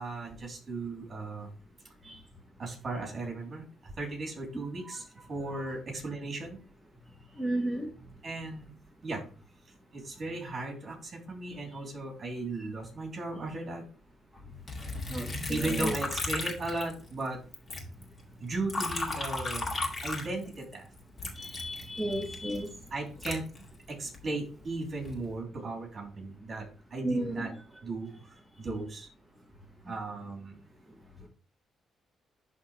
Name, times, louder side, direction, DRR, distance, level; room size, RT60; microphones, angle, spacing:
voice 1, 0.0-1.5 2.6-6.6 8.2-8.7 9.0-9.2 9.9-13.8 15.5-17.4 18.4-19.7 20.0-20.9 22.9-23.4 23.9-27.5 27.8-29.1 29.9-30.6, right 2 dB, 40° right, 0 dB, 3.2 m, -36 dB
voice 2, 7.4-7.9 15.1-16.0 21.3-22.7 27.0-27.4, right 1 dB, ahead, 0 dB, 1.4 m, -33 dB
Liquid, 14.7-17.3 17.5-20.7 21.2-24.2 24.8-25.3, left 2 dB, 35° left, 2.1 m, -35 dB
11.5 x 3.8 x 3.2 m, 0.37 s
cardioid pair, 90°, 0 cm